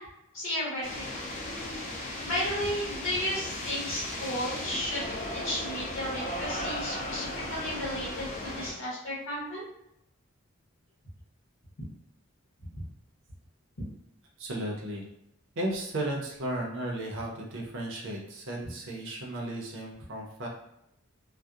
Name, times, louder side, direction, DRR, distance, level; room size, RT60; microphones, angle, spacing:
voice 1, 0.3-1.2 2.2-5.0 5.3-9.6, left 1 dB, 85° left, -6 dB, 1.0 m, -33 dB
sound 1, 0.8-8.7, left 1 dB, 35° left, 0.4 m, -36 dB
voice 2, 14.4-15.0 15.6-20.5, right 1 dB, 60° right, -2 dB, 0.5 m, -34 dB
2.6 x 2.1 x 2.3 m, 0.80 s
head